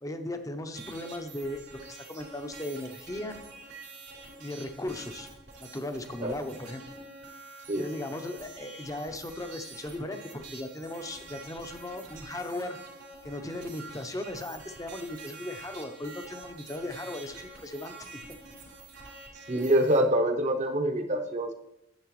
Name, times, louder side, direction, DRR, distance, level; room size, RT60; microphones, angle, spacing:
voice 1, 0.0-3.4 4.4-5.3 5.6-6.8 7.8-12.8 13.2-18.4, left 1 dB, 20° left, 7 dB, 0.7 m, -37 dB
sound 1, 0.7-20.0, right 3 dB, 80° right, 3.4 m, -47 dB
voice 2, 19.5-21.5, right 1 dB, 40° right, 6 dB, 0.8 m, -25 dB
10.5 x 7.9 x 3.1 m, 0.83 s
head